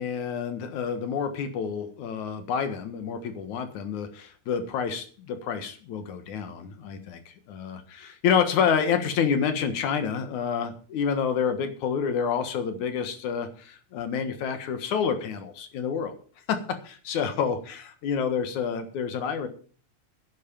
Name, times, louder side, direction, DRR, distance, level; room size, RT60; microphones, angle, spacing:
voice 1, 0.0-16.1 16.5-19.5, left 7 dB, 75° left, 9 dB, 2.8 m, -28 dB
10.5 x 9.0 x 7.0 m, 0.41 s
omnidirectional pair, 3.5 m